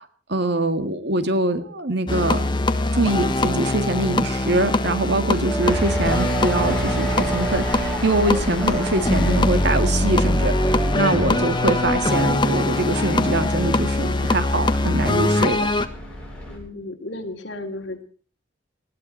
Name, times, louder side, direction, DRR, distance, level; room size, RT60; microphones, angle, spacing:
voice 1, 0.0-2.4 2.9-10.7 10.9-15.7, right 2 dB, 60° right, 8 dB, 1.9 m, -23 dB
sound 1, 2.1-15.9, left 1 dB, 25° left, 1.3 m, -22 dB
sound 2, 5.5-12.1, right 4 dB, 15° right, 1.6 m, -33 dB
sound 3, 5.6-16.6, equal, 5° left, 7.0 m, -35 dB
voice 2, 16.4-18.0, left 2 dB, 65° left, 3 dB, 3.2 m, -34 dB
19.5 x 16.5 x 4.3 m, 0.41 s
head